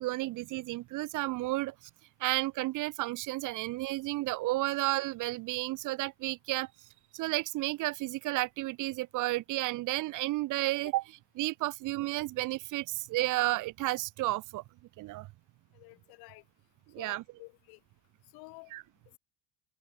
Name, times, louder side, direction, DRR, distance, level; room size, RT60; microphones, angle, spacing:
voice 1, 0.0-1.7 2.2-6.7 7.1-11.0 11.4-14.6 15.0-15.3 16.9-17.2 18.7-18.8, right 18 dB, 55° right, 1.0 m, -32 dB
voice 2, 15.7-16.4 17.0-17.8 18.3-18.7, left 29 dB, 75° left, 3.3 m, -51 dB
cardioid pair, 130°, 38 cm